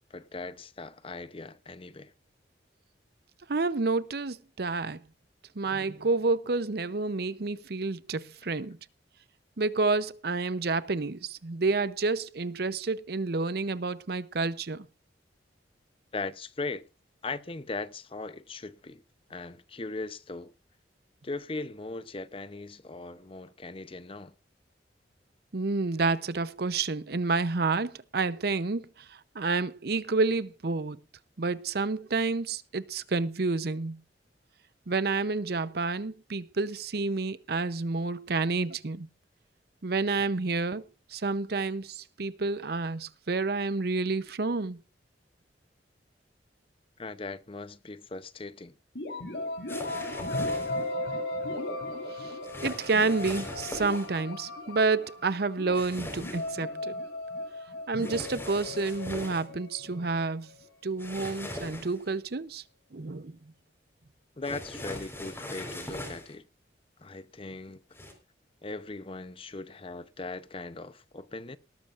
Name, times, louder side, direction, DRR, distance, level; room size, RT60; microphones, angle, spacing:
voice 1, 0.1-2.1 16.1-16.8 17.2-19.0 19.3-20.5 21.2-24.3 47.0-48.7 64.4-66.5 67.0-67.8 68.6-71.6, left 3 dB, 30° left, 0.7 m, -39 dB
voice 2, 3.5-5.0 5.6-8.8 9.6-14.9 25.5-28.9 29.3-31.0 31.4-34.0 34.9-39.1 39.8-40.8 41.1-44.8 52.2-52.3 52.6-57.0 57.9-60.5 60.8-62.6 62.9-63.3, right 3 dB, 60° right, 0.7 m, -29 dB
sound 1, 48.9-60.7, left 1 dB, 70° left, 3.8 m, -36 dB
sound 2, 49.7-50.9 52.4-54.1 55.7-56.5 58.0-59.4 61.0-62.1 64.4-66.3 67.9-68.1, left 1 dB, 15° left, 4.4 m, -40 dB
19.0 x 13.0 x 2.5 m
head